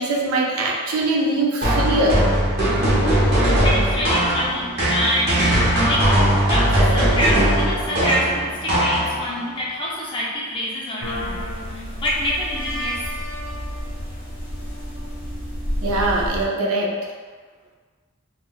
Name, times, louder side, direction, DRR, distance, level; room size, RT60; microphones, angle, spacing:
voice 1, 0.0-2.3 15.8-16.9, right 2 dB, 90° right, -1 dB, 0.5 m, -22 dB
sound 1, 1.6-9.4, right 1 dB, 50° right, 0.9 m, -19 dB
voice 2, 3.2-6.2 6.5-13.1, equal, 25° left, -5 dB, 0.4 m, -26 dB
sound 2, 11.0-16.4, equal, 70° left, 1.3 m, -30 dB
3.4 x 2.4 x 2.3 m, 1.5 s
head